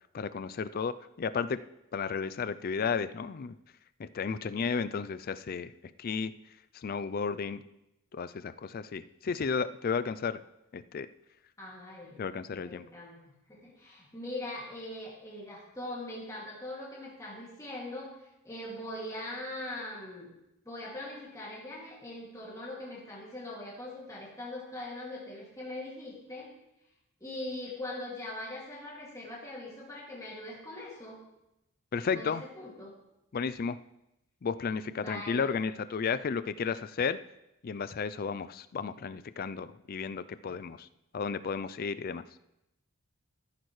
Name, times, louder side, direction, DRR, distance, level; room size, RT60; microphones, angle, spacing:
voice 1, 0.1-1.6 1.9-3.6 4.0-5.7 6.0-6.3 6.7-7.6 8.1-10.4 10.7-11.1 12.2-12.9 31.9-32.4 33.3-33.8 34.4-37.2 37.6-40.9 41.1-42.2, left 5 dB, 40° left, 14 dB, 0.4 m, -33 dB
voice 2, 11.6-12.2 12.6-13.2 13.5-18.2 18.4-20.3 20.6-26.5 27.2-31.2 32.1-32.9 34.9-35.5 40.5-40.6, left 1 dB, 15° left, -5 dB, 2.3 m, -41 dB
13.5 x 11.0 x 3.2 m, 0.88 s
head